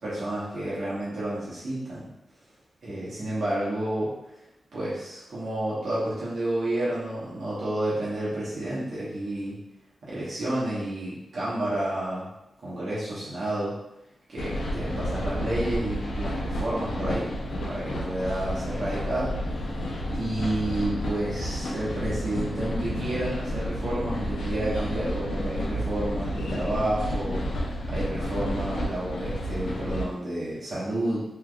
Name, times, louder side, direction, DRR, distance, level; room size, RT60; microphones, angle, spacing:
voice 1, 0.0-2.1 2.8-4.1 4.7-9.6 10.1-12.3 12.6-13.7 14.3-17.3 17.7-19.3 20.1-31.3, right 1 dB, 65° right, -9 dB, 1.1 m, -30 dB
sound 1, 14.4-30.0, equal, 85° left, 0.5 m, -31 dB
3.3 x 3.0 x 2.3 m, 0.88 s
wide cardioid pair, 165°, 0 cm